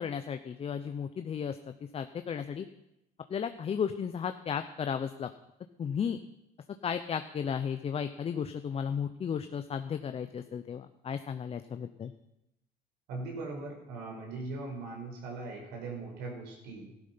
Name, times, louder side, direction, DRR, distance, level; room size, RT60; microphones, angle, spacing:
voice 1, 0.0-2.7 3.3-5.3 5.8-6.2 6.8-12.1, left 7 dB, 35° left, 9 dB, 0.7 m, -34 dB
voice 2, 13.1-16.9, right 3 dB, 90° right, -1 dB, 5.3 m, -40 dB
14.0 x 11.5 x 5.7 m, 0.86 s
cardioid pair, 110°, 17 cm